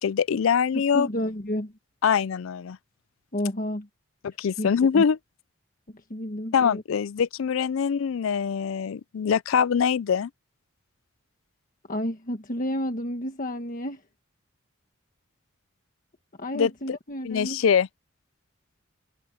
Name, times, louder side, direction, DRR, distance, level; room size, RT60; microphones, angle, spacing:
voice 1, 0.0-1.1 2.0-2.8 4.2-5.2 6.5-10.3 16.5-16.7 17.2-17.9, left 7 dB, 70° left, 0.4 m, -23 dB
voice 2, 0.7-1.7 3.3-3.9 4.6-4.7 4.9-5.0 5.9-6.8 11.9-14.0 16.4-17.6, equal, 40° left, 1.5 m, -31 dB
head